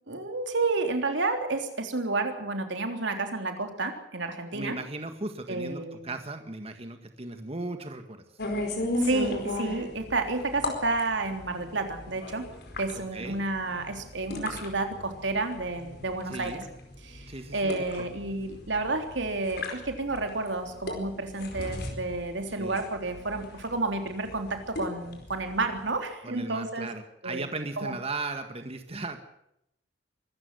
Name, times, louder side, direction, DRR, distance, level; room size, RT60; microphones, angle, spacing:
voice 1, 0.1-4.8 5.5-6.1 9.0-12.5 12.8-16.6 17.0-26.9 27.2-27.5 27.8-28.0, right 3 dB, 90° right, 5 dB, 3.6 m, -30 dB
voice 2, 4.5-8.2 12.9-13.4 16.3-16.7 17.3-18.1 22.6-22.8 26.2-29.2, right 2 dB, 35° right, 7 dB, 1.7 m, -37 dB
sound 1, 8.4-26.0, left 2 dB, 60° left, 4.7 m, -37 dB
24.5 x 13.5 x 7.9 m, 0.78 s
head